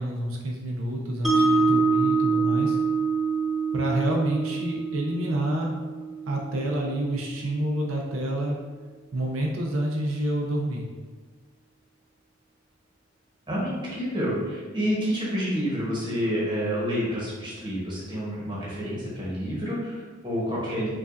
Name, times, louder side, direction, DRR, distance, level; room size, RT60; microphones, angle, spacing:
voice 1, 0.0-2.8 3.7-5.7 6.3-8.6 9.1-10.9, right 1 dB, 85° right, -1 dB, 0.5 m, -28 dB
Mallet percussion, 1.2-7.4, right 4 dB, ahead, 0.4 m, -25 dB
voice 2, 13.5-20.9, equal, 25° right, -7 dB, 1.0 m, -28 dB
4.7 x 2.4 x 2.5 m, 1.4 s
head